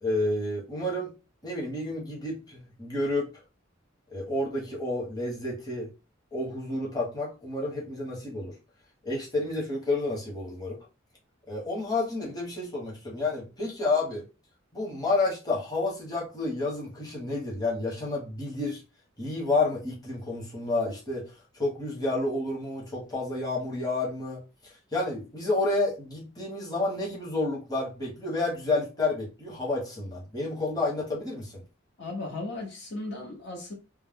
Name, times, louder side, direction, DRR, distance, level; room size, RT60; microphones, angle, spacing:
voice 1, 0.0-1.1 1.4-3.3 4.1-5.9 6.3-8.5 9.0-10.8 11.5-14.2 14.7-18.8 19.2-31.6, left 2 dB, 20° left, 0.9 m, -30 dB
voice 2, 32.0-33.7, left 2 dB, 60° left, 0.9 m, -36 dB
2.3 x 2.1 x 3.5 m
head